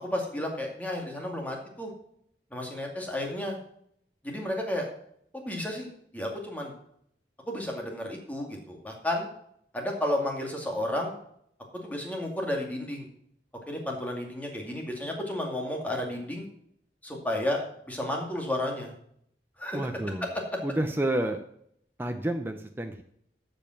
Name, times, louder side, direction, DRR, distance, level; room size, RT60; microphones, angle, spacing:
voice 1, 0.0-1.9 2.5-3.6 4.2-4.9 5.3-5.9 6.1-6.8 7.5-9.3 9.7-11.2 11.8-13.1 13.7-16.5 17.0-17.6 17.9-18.9 19.6-19.8, left 1 dB, 10° left, 0 dB, 2.2 m, -32 dB
voice 2, 19.7-20.3 20.6-21.4 22.0-23.0, right 1 dB, 10° right, 5 dB, 0.7 m, -29 dB
14.0 x 5.3 x 5.9 m, 0.69 s
head